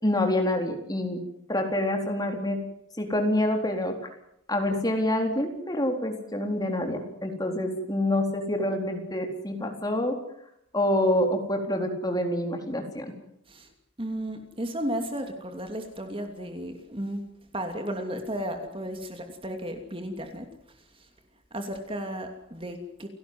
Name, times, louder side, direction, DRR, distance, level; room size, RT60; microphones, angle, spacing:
voice 1, 0.0-1.2 1.5-2.6 3.0-4.0 4.5-10.2 10.7-13.1, left 1 dB, 20° left, 3 dB, 4.1 m, -27 dB
voice 2, 14.0-17.2 17.5-20.5 20.9-21.1 21.5-23.1, equal, 25° right, 5 dB, 2.8 m, -34 dB
30.0 x 18.0 x 7.9 m, 0.77 s
head